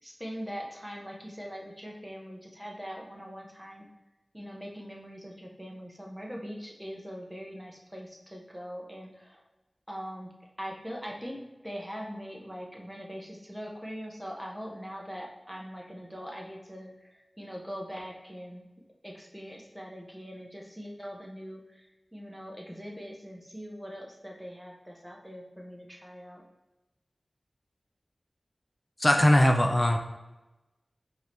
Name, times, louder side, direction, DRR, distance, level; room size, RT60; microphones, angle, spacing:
voice 1, 0.0-3.9 4.3-9.4 9.9-10.3 10.6-18.6 19.0-26.4, equal, 5° right, -1 dB, 1.0 m, -42 dB
voice 2, 29.0-30.0, left 1 dB, 20° left, 3 dB, 0.5 m, -20 dB
4.6 x 2.8 x 3.3 m, 1.1 s
wide cardioid pair, 45°, 0 cm